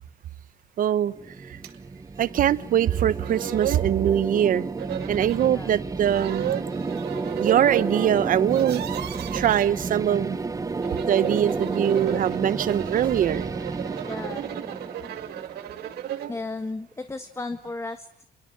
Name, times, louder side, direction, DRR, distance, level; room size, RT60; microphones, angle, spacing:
voice 1, 0.8-1.1 1.4-1.6 2.2-4.6 5.1-6.5 7.3-8.8 9.3-10.4 11.1-13.5, right 10 dB, 55° right, 16 dB, 1.1 m, -22 dB
sound 1, 1.1-16.1, right 4 dB, 20° right, 1.1 m, -32 dB
sound 2, 1.6-1.8 2.2-2.3 3.0-3.1 3.2-3.9 4.8-5.5 6.0-8.1 8.4-9.7 10.7-16.4, right 11 dB, 70° right, 2.3 m, -34 dB
voice 2, 14.1-14.5 16.3-18.2, left 3 dB, 15° left, 9 dB, 1.5 m, -34 dB
27.0 x 22.5 x 8.8 m, 0.68 s
cardioid pair, 110°, 17 cm